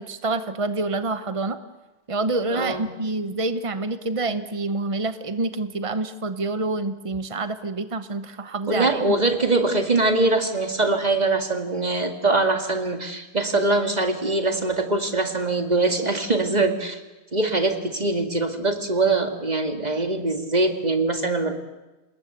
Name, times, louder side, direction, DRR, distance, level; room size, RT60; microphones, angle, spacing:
voice 1, 0.0-1.6 2.1-9.2, right 2 dB, 60° right, 11 dB, 0.3 m, -27 dB
voice 2, 2.5-2.8 8.7-17.0 17.3-21.6, right 2 dB, 20° right, 5 dB, 2.1 m, -23 dB
28.0 x 20.5 x 8.1 m, 1.1 s
omnidirectional pair, 2.1 m